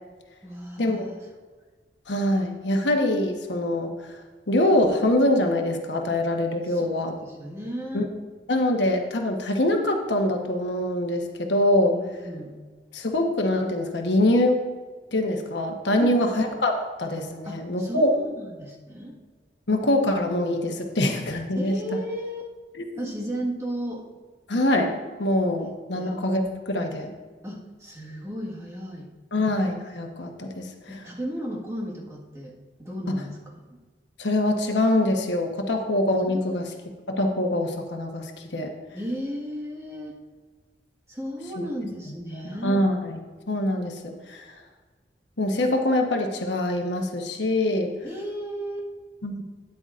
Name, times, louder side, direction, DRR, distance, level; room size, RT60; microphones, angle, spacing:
voice 1, 0.4-1.2 6.6-6.9 7.2-8.1 11.9-12.6 16.0-16.4 17.4-19.2 21.5-22.5 22.9-24.0 25.9-26.2 27.4-29.1 30.9-33.6 35.7-35.8 36.3-36.6 38.9-40.2 41.1-42.8 48.0-48.9, equal, 15° right, -3 dB, 1.7 m, -34 dB
voice 2, 2.1-4.2 4.5-7.1 7.9-8.1 8.5-11.9 12.9-14.6 15.1-18.1 19.7-21.8 22.8-23.1 24.5-27.1 29.3-31.0 33.1-33.2 34.2-36.7 37.1-38.7 42.3-43.2 43.5-44.4 45.4-47.9 49.2-49.4, left 1 dB, 80° left, 3 dB, 1.2 m, -24 dB
12.5 x 9.7 x 2.5 m, 1.4 s
head